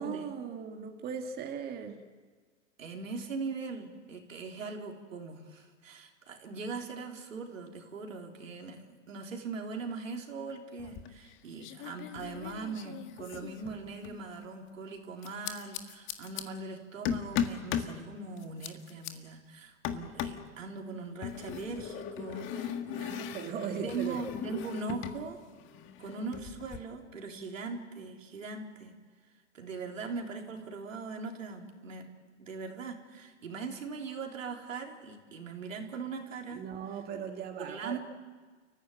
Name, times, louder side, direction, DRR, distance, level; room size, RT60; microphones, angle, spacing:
voice 1, 0.0-2.1 22.8-24.2 36.5-38.0, right 7 dB, 25° right, 4 dB, 1.9 m, -38 dB
voice 2, 2.8-22.8 23.8-25.4 26.0-28.9 29.5-32.1 32.4-36.6 37.6-38.0, right 4 dB, 85° right, 2 dB, 3.8 m, -40 dB
sound 1, 10.8-11.3 11.6-14.2 15.2-16.4 17.0-17.9 18.4-19.1 19.8-20.5 21.2-25.2 25.5-26.8, left 9 dB, 30° left, 1.6 m, -38 dB
29.5 x 15.0 x 9.1 m, 1.5 s
hypercardioid pair, 125°, 38 cm